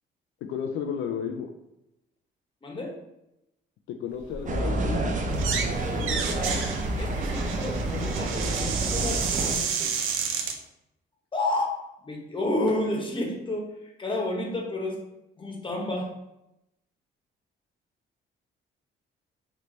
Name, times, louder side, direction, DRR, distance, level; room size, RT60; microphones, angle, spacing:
voice 1, 0.5-1.5 4.0-5.3, left 7 dB, 80° left, 4 dB, 0.4 m, -32 dB
voice 2, 2.6-3.0 7.0-9.9 11.3-11.7 12.0-13.7 14.0-15.0 15.4-16.1, left 1 dB, 25° left, -1 dB, 1.1 m, -30 dB
sound 1, 4.1-9.2, equal, 5° right, 1.0 m, -44 dB
sound 2, 4.5-9.6, right 2 dB, 40° right, 0.7 m, -28 dB
sound 3, 5.3-5.7 6.0-10.6, right 6 dB, 85° right, 0.6 m, -30 dB
3.2 x 3.2 x 3.9 m, 0.87 s
cardioid pair, 90°, 20 cm